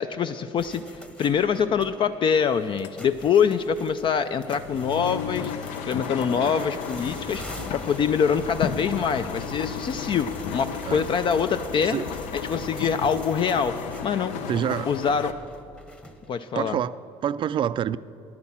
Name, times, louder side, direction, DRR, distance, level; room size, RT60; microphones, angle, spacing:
voice 1, 0.0-5.5 5.8-12.0 12.3-13.7 14.0-14.3 14.9-15.3 16.3-16.8, left 7 dB, 45° left, 10 dB, 0.4 m, -24 dB
sound 1, 0.6-16.5, equal, 10° left, 1.0 m, -43 dB
sound 2, 2.4-3.0 3.3-15.3, left 7 dB, 80° left, 0.7 m, -34 dB
voice 2, 6.4-6.7 10.8-11.1 11.8-12.1 12.8-12.9 14.5-15.0 16.5-16.9 17.2-18.0, right 9 dB, 40° right, 16 dB, 0.4 m, -27 dB
9.8 x 9.7 x 7.3 m, 2.6 s
cardioid pair, 100°, 12 cm